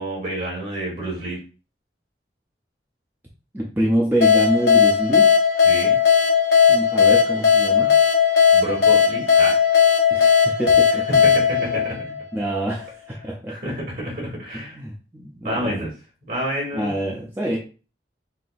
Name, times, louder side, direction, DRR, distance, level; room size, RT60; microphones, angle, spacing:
voice 1, 0.0-1.4 5.6-5.9 8.5-9.6 11.1-12.0 13.5-14.8 15.4-15.9 16.3-16.9, right 1 dB, 50° right, -3 dB, 2.2 m, -29 dB
voice 2, 3.5-5.3 6.7-7.9 10.1-11.0 12.3-13.6 14.5-15.9 16.7-17.6, right 1 dB, 10° right, -3 dB, 0.6 m, -26 dB
sound 1, 4.2-12.7, left 7 dB, 70° left, 0.9 m, -17 dB
5.6 x 2.8 x 2.5 m, 0.35 s
head